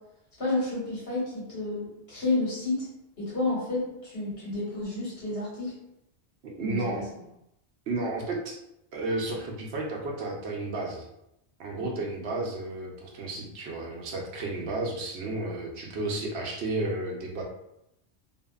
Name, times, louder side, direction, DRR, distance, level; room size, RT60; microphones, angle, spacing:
voice 1, 0.4-2.9 3.2-5.7 6.6-7.1 11.8-12.0, left 2 dB, 65° left, -8 dB, 1.6 m, -30 dB
voice 2, 6.4-7.0 7.9-8.6 8.9-11.1 11.6-17.4, right 2 dB, 75° right, 0 dB, 0.9 m, -32 dB
2.7 x 2.5 x 2.3 m, 0.82 s
omnidirectional pair, 1.1 m